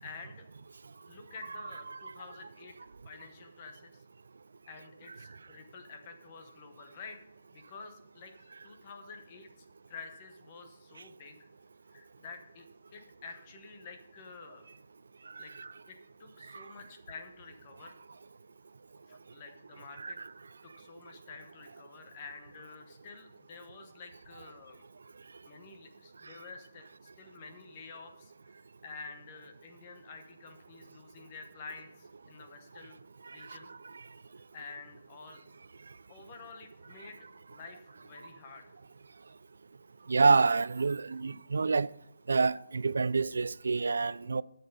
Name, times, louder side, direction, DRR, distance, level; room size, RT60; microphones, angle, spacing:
voice 1, 0.0-0.4 1.1-2.7 3.0-4.0 4.7-7.2 7.5-9.5 9.9-11.4 11.9-12.6 12.9-14.7 15.4-15.5 15.9-18.0 19.1-20.2 20.6-24.8 25.4-28.5 28.8-33.0 33.3-33.7 34.5-35.4 36.1-38.6, left 4 dB, 20° left, 0.9 m, -49 dB
voice 2, 40.1-41.9 42.3-44.4, right 4 dB, 90° right, 0.3 m, -27 dB
11.0 x 6.9 x 5.3 m
hypercardioid pair, 180°, 0 cm